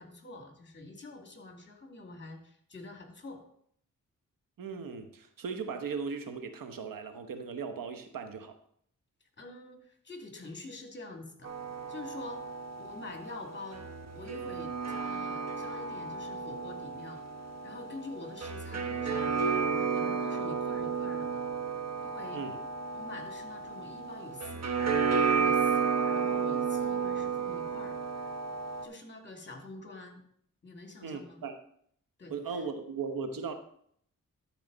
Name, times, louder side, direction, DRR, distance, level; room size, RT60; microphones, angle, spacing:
voice 1, 0.0-3.4 9.4-11.5 11.9-12.5 12.8-13.9 14.1-17.2 17.6-21.4 22.0-22.4 22.9-28.3 28.8-30.2 30.6-31.4 32.2-32.6, left 2 dB, 35° left, 2 dB, 2.5 m, -46 dB
voice 2, 4.6-8.6 22.3-22.6 31.0-31.6 32.3-33.5, right 5 dB, 80° right, 7 dB, 1.1 m, -38 dB
sound 1, 11.4-28.9, right 5 dB, 50° right, 1.1 m, -32 dB
12.5 x 4.9 x 4.0 m, 0.65 s
cardioid pair, 50°, 33 cm